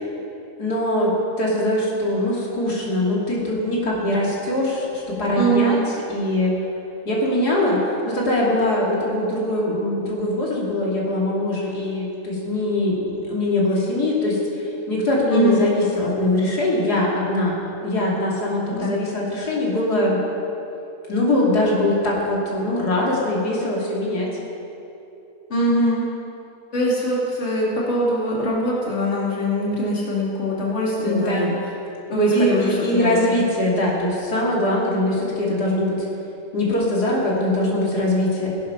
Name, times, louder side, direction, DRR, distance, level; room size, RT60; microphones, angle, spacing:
voice 1, 0.6-5.8 6.1-6.5 7.0-20.2 21.1-24.3 31.0-31.5 32.3-36.0 36.5-38.5, left 1 dB, 90° left, -4 dB, 3.2 m, -22 dB
voice 2, 5.3-5.8 15.3-15.7 18.7-18.9 25.5-26.1 26.7-31.6 32.1-33.4, right 1 dB, 45° left, -5 dB, 2.9 m, -22 dB
17.5 x 11.0 x 5.7 m, 2.9 s
omnidirectional pair, 1.6 m